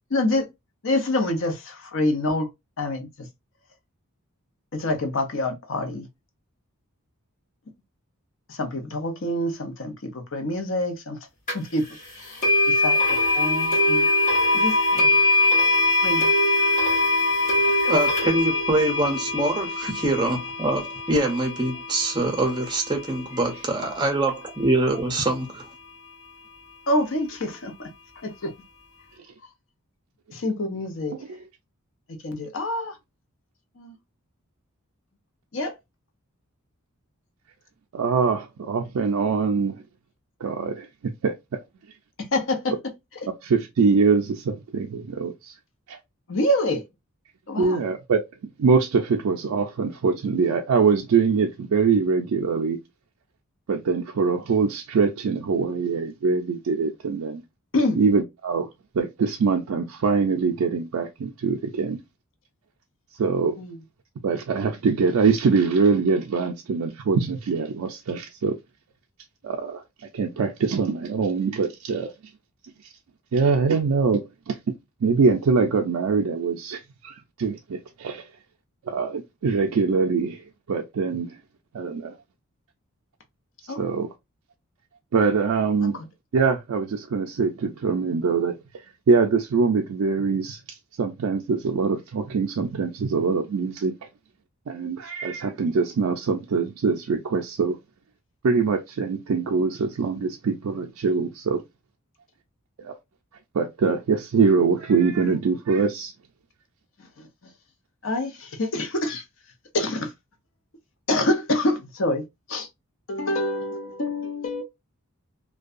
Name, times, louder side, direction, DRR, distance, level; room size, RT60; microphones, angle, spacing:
voice 1, 0.1-0.5 0.8-2.5 2.8-3.3 4.7-6.1 8.5-11.2 11.5-11.9 12.2-14.1 14.5-15.2 16.0-16.3 26.9-27.9 28.2-28.5 30.3-31.2 32.2-33.0 35.5-35.7 42.3-42.7 46.3-46.8 47.5-47.8 57.7-58.0 63.6-63.8 83.7-83.8 85.8-86.1 107.2-107.3 108.0-109.2 109.7-110.1 111.1-112.7 113.1-114.6, left 1 dB, 60° left, 0.7 m, -26 dB
sound 1, 11.5-11.6 12.4-23.4, left 2 dB, 35° left, 0.9 m, -22 dB
voice 2, 17.8-25.7, right 2 dB, 20° right, 0.6 m, -24 dB
voice 3, 37.9-39.8 40.4-41.3 43.4-45.5 45.9-46.0 47.6-48.2 48.6-52.8 53.7-57.4 58.0-58.7 58.9-62.0 63.2-63.6 64.2-68.6 69.4-72.1 73.3-74.7 75.0-78.3 78.9-81.3 81.7-82.1 83.8-84.1 85.1-86.0 86.3-88.6 89.1-90.6 91.0-93.9 94.7-97.8 98.4-101.6 102.8-103.0 103.5-106.1, right 5 dB, 75° right, 0.4 m, -23 dB
2.6 x 2.2 x 2.4 m
head